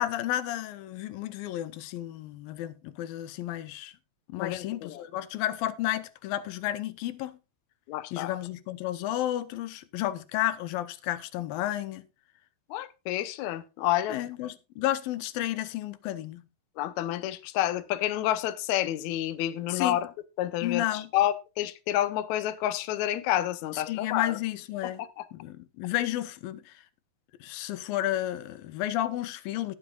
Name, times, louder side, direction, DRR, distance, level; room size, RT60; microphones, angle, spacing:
voice 1, 0.0-3.9 4.3-7.4 8.1-12.1 14.1-16.4 19.7-20.0 20.6-21.1 23.7-25.0 25.3-26.8 27.4-29.8, left 13 dB, 85° left, 2.6 m, -32 dB
voice 2, 4.4-5.0 7.9-8.3 12.7-14.2 16.8-20.1 20.4-24.4 24.8-24.9 25.2-25.3, left 13 dB, 70° left, 1.9 m, -29 dB
19.5 x 7.2 x 2.4 m
omnidirectional pair, 4.0 m